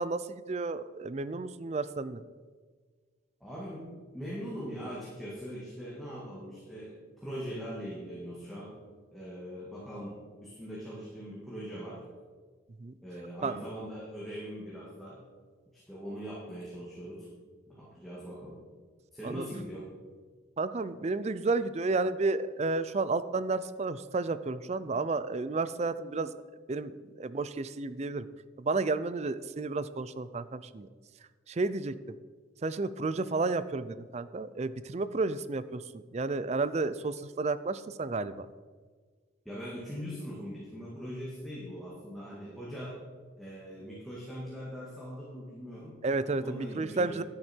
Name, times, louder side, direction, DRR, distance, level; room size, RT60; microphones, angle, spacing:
voice 1, 0.0-2.2 12.8-12.9 13.4-13.6 19.2-19.4 20.6-26.3 26.7-28.3 28.6-30.9 31.5-32.2 32.6-35.8 36.1-38.5 46.0-47.2, right 3 dB, 35° right, 14 dB, 0.4 m, -32 dB
voice 2, 3.4-8.8 9.1-12.0 13.0-15.2 15.7-17.3 17.7-18.6 19.1-19.9 39.5-43.0 43.4-46.0 46.4-47.2, equal, ahead, -7 dB, 1.9 m, -41 dB
11.0 x 9.5 x 4.4 m, 1.5 s
head